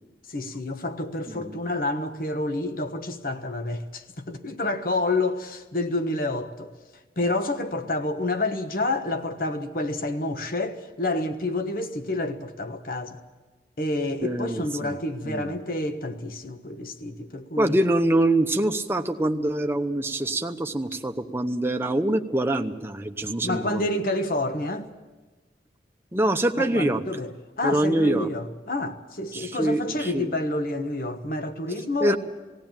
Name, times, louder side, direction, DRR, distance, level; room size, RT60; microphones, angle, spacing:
voice 1, 0.3-6.7 7.2-13.2 13.8-17.8 23.4-24.9 26.6-32.2, left 2 dB, 50° left, 1.2 m, -29 dB
voice 2, 14.2-15.0 15.2-15.5 17.6-23.8 26.1-27.0 27.6-28.3 29.3-30.3 32.0-32.2, right 1 dB, 15° right, 0.9 m, -25 dB
19.5 x 16.0 x 9.0 m
head